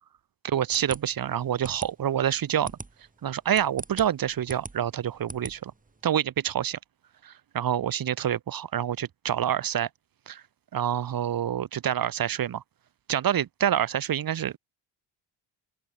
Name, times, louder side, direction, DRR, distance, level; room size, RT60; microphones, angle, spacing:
voice 1, 0.4-2.7 3.2-5.7 6.0-6.8 7.2-9.9 10.3-10.4 10.7-12.6 13.1-14.6, right 10 dB, 45° right, 1.1 m, -27 dB
sound 1, 0.7-6.0, right 3 dB, 15° right, 3.8 m, -42 dB
open air
cardioid pair, 95°, 48 cm